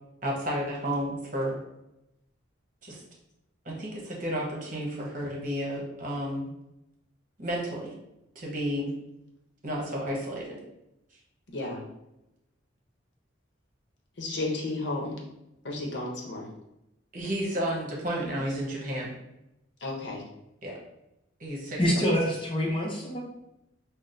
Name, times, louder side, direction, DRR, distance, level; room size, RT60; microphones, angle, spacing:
voice 1, 0.2-1.6 2.8-3.0 3.6-6.5 7.4-7.9 8.3-8.9 9.6-10.6 17.1-19.1 20.6-20.8 21.4-21.8, equal, 45° right, -3 dB, 1.0 m, -32 dB
voice 2, 11.5-11.8 14.2-15.2 15.6-16.5 19.8-20.2, left 2 dB, 65° left, -1 dB, 0.8 m, -33 dB
voice 3, 21.8-23.2, equal, 25° left, -2 dB, 0.7 m, -26 dB
5.9 x 2.1 x 2.6 m, 0.88 s
head